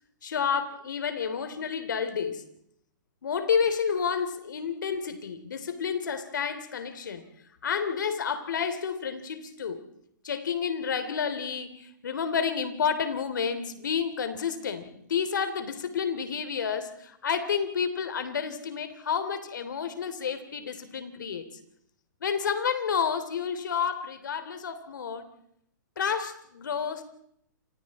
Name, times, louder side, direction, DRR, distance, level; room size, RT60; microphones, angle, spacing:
voice 1, 0.2-2.4 3.2-7.2 7.6-9.8 10.2-21.5 22.2-25.3 26.0-27.0, left 6 dB, 75° left, 10 dB, 3.1 m, -30 dB
28.5 x 26.0 x 4.2 m, 0.72 s
hypercardioid pair, 135°, 10 cm